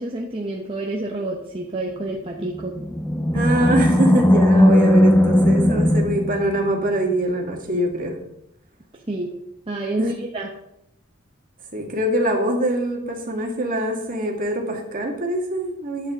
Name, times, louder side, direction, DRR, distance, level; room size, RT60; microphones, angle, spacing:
voice 1, 0.0-2.8 9.1-9.3 9.7-10.5, right 2 dB, 25° right, -1 dB, 1.0 m, -28 dB
Animal, 2.4-7.0, left 1 dB, 10° left, 0.7 m, -17 dB
voice 2, 3.3-8.2 10.0-10.1 11.7-16.1, right 1 dB, 40° right, 1 dB, 1.9 m, -24 dB
11.5 x 8.3 x 3.7 m, 0.81 s
head